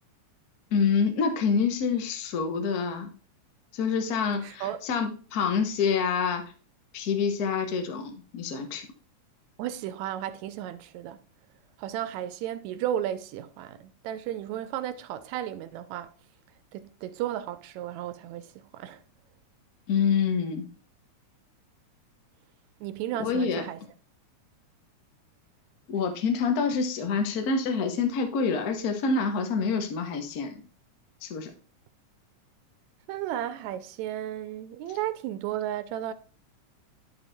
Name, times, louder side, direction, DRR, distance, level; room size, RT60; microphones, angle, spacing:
voice 1, 0.7-3.1 3.7-6.4 6.9-8.8 19.9-20.6 23.2-23.6 25.9-30.6 31.2-31.5, left 5 dB, 90° left, 0.8 m, -27 dB
voice 2, 4.3-4.8 9.6-11.2 11.8-16.1 16.7-19.0 22.8-23.8 33.1-36.1, right 11 dB, 80° right, 1.8 m, -34 dB
11.5 x 4.1 x 3.4 m
omnidirectional pair, 3.3 m